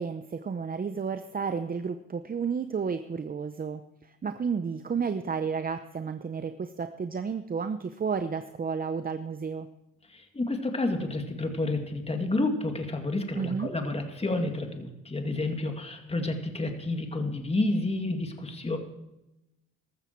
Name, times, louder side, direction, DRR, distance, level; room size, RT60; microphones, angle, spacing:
voice 1, 0.0-9.7 13.3-13.7, right 5 dB, 30° right, 10 dB, 0.7 m, -32 dB
voice 2, 10.1-18.8, left 2 dB, 20° left, 5 dB, 2.3 m, -30 dB
14.5 x 13.0 x 4.5 m, 0.93 s
cardioid pair, 90°, 30 cm